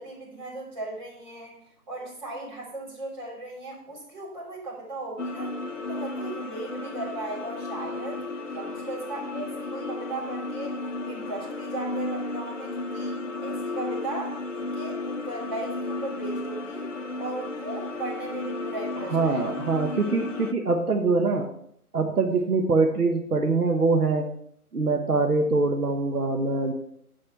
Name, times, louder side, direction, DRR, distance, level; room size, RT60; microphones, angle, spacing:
voice 1, 0.0-1.6 1.9-5.5 5.9-10.8 11.0-16.9 17.2-19.4, right 2 dB, 30° right, -3 dB, 3.3 m, -37 dB
sound 1, 5.2-20.5, left 2 dB, 55° left, 0.7 m, -33 dB
voice 2, 19.1-21.5 21.9-24.3 24.7-26.7, right 3 dB, 80° right, 3 dB, 1.2 m, -23 dB
13.0 x 4.3 x 4.5 m, 0.69 s
figure-of-eight pair, 155°, 45 cm